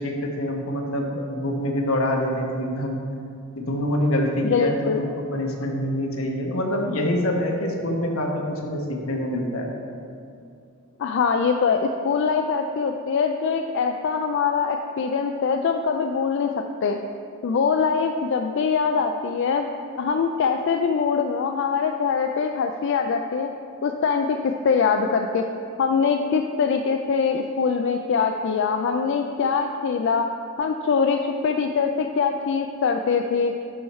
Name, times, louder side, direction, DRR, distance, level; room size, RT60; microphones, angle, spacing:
voice 1, 0.0-3.0 3.6-9.7, left 1 dB, 85° left, 1 dB, 1.1 m, -25 dB
voice 2, 4.4-5.0 11.0-17.0 17.4-19.7 20.0-23.5 23.8-25.4 25.8-30.3 30.6-33.5, left 5 dB, 60° left, 4 dB, 0.4 m, -23 dB
11.0 x 4.7 x 4.3 m, 2.5 s
head